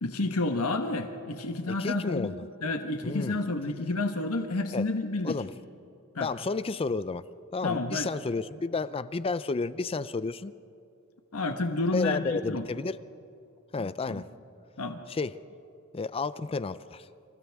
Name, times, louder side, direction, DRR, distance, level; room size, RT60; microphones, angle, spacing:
voice 1, 0.0-2.3 2.6-5.4 6.1-6.3 7.6-8.1 11.3-12.6 13.8-14.2 14.8-15.0, left 2 dB, 75° left, 5 dB, 1.3 m, -30 dB
voice 2, 1.7-2.4 3.0-3.4 4.7-4.9 5.2-5.5 6.2-7.2 7.5-10.5 11.9-13.0 13.7-14.3 15.1-15.4 15.9-17.1, left 4 dB, 25° left, 15 dB, 0.4 m, -31 dB
29.0 x 27.5 x 3.6 m, 2.6 s
head